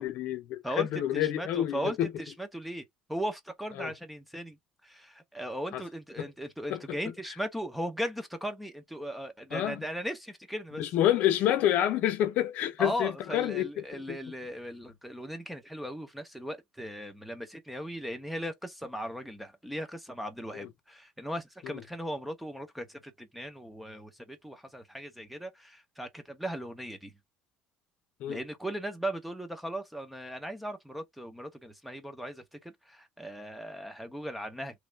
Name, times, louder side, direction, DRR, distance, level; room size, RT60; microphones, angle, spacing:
voice 1, 0.0-2.1 3.8-3.9 5.7-5.8 6.2-6.3 6.7-7.0 9.5-9.8 10.8-14.2 20.5-20.7 21.6-21.8 28.2-28.4, left 12 dB, 60° left, 0.6 m, -28 dB
voice 2, 1.1-2.8 3.1-4.6 4.8-10.8 12.8-27.1 28.3-34.8, equal, ahead, 0.6 m, -38 dB
3.1 x 2.3 x 3.2 m
cardioid pair, 155°, 3 cm